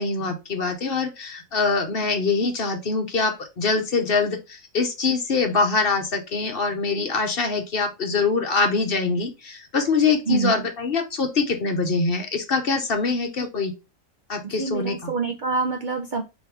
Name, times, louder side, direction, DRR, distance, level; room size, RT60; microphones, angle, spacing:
voice 1, 0.0-13.7 14.3-15.1, left 4 dB, 50° left, 5 dB, 1.0 m, -24 dB
voice 2, 14.4-16.2, right 4 dB, 55° right, 4 dB, 0.5 m, -26 dB
4.5 x 3.1 x 3.2 m, 0.26 s
omnidirectional pair, 1.4 m